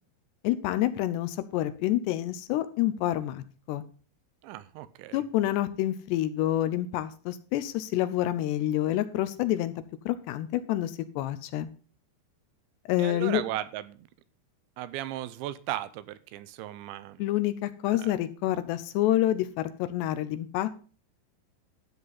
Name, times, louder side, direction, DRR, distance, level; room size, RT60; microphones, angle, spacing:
voice 1, 0.4-3.8 5.1-9.7 10.1-11.7 12.9-13.4 17.2-20.7, left 13 dB, 80° left, 13 dB, 2.7 m, -28 dB
voice 2, 4.4-5.2 13.0-14.1 14.8-17.2 17.9-18.2, right 14 dB, 85° right, 15 dB, 3.1 m, -36 dB
13.0 x 8.4 x 4.1 m, 0.39 s
omnidirectional pair, 5.2 m